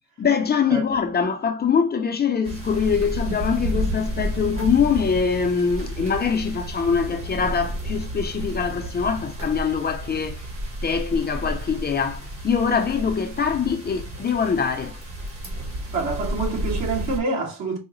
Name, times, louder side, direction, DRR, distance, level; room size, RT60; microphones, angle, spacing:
voice 1, 0.2-10.4 10.8-15.0, left 6 dB, 35° left, 0.6 m, -23 dB
sound 1, 2.4-17.2, right 1 dB, 50° right, 1.4 m, -31 dB
voice 2, 15.9-17.8, right 3 dB, 70° right, 1.7 m, -26 dB
4.7 x 2.0 x 3.0 m
cardioid pair, 90°, 30 cm